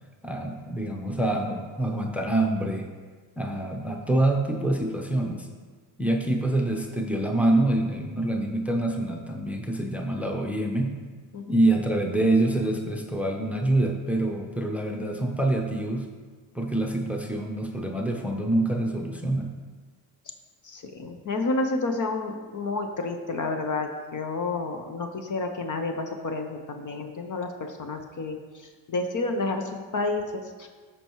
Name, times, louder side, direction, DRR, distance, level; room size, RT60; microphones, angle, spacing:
voice 1, 0.2-2.9 3.4-5.5 6.0-10.9 11.5-16.1 16.5-19.5, right 1 dB, 5° right, 2 dB, 0.8 m, -26 dB
voice 2, 20.6-28.4 28.9-30.7, left 3 dB, 40° left, 5 dB, 0.9 m, -30 dB
13.0 x 4.6 x 3.1 m, 1.5 s
supercardioid pair, 70°, 48 cm